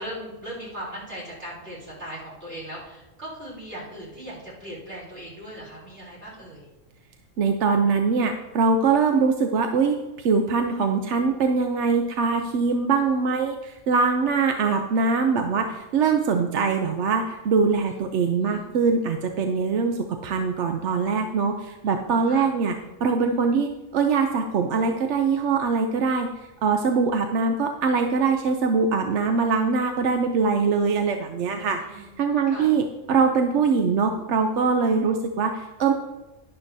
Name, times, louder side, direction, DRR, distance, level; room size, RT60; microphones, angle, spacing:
voice 1, 0.0-6.7 17.9-18.0 18.4-18.7 22.3-22.5 31.5-32.2 32.5-32.7, equal, 50° right, -7 dB, 3.7 m, -39 dB
voice 2, 7.4-22.7 23.0-26.3 26.6-35.9, right 5 dB, 70° right, 5 dB, 0.9 m, -23 dB
11.5 x 11.0 x 2.7 m, 1.1 s
omnidirectional pair, 1.3 m